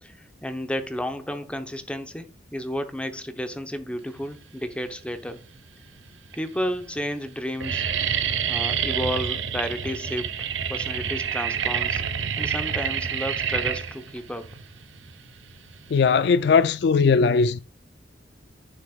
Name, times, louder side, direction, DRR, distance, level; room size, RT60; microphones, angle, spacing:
voice 1, 0.0-5.4 6.3-7.8 8.4-12.0 12.4-14.5, equal, 5° left, 0.8 m, -32 dB
sound 1, 5.0-5.6 6.2-6.3 6.6-7.0 7.2-16.2, right 8 dB, 85° right, 0.8 m, -28 dB
voice 2, 15.9-17.6, left 5 dB, 60° left, 0.3 m, -19 dB
10.5 x 6.4 x 2.4 m
head